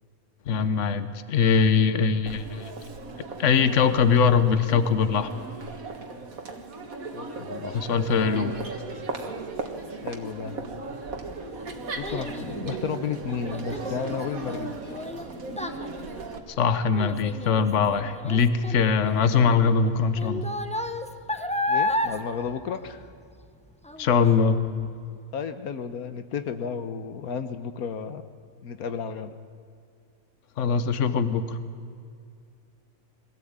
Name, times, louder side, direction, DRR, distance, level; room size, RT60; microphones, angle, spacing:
voice 1, 0.5-2.7 3.4-5.3 7.7-8.5 16.5-20.5 24.0-24.6 30.6-31.6, left 5 dB, 60° left, 12 dB, 1.3 m, -22 dB
Crowd, 2.3-16.4, right 3 dB, 75° right, 2.2 m, -37 dB
voice 2, 7.1-8.7 10.0-10.6 11.9-14.8 21.7-23.1 25.3-28.2 28.6-29.3, left 6 dB, 90° left, 10 dB, 1.5 m, -33 dB
Child speech kid speaking, 10.9-23.5 23.8-24.3 24.8-24.9, left 2 dB, 5° left, 0.9 m, -33 dB
22.5 x 17.0 x 8.8 m, 2.3 s
omnidirectional pair, 1.5 m